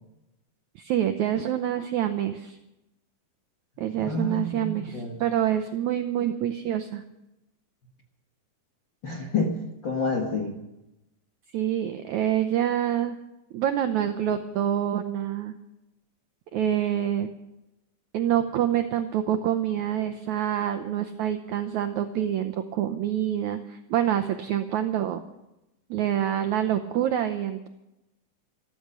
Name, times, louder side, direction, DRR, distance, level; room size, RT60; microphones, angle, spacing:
voice 1, 0.7-2.6 3.8-7.0 11.5-13.2 13.5-15.5 16.5-17.3 18.1-25.2 25.9-27.7, right 10 dB, 90° right, 8 dB, 1.6 m, -26 dB
voice 2, 4.0-5.2 9.0-9.6 9.8-10.6, left 3 dB, 55° left, 1 dB, 1.3 m, -28 dB
13.5 x 13.5 x 6.7 m, 0.91 s
omnidirectional pair, 4.3 m